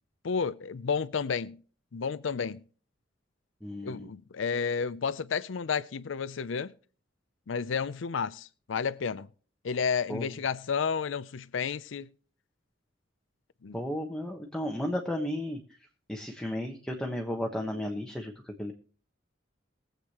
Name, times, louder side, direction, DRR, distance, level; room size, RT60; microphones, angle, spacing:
voice 1, 0.2-1.6 1.9-2.6 3.8-6.7 7.5-9.3 9.6-12.1 13.6-13.8, left 6 dB, 70° left, 0.5 m, -31 dB
voice 2, 3.6-4.1 10.1-10.3 13.7-15.6 16.1-18.3 18.6-18.7, left 1 dB, 5° left, 1.2 m, -33 dB
22.0 x 8.1 x 3.0 m
head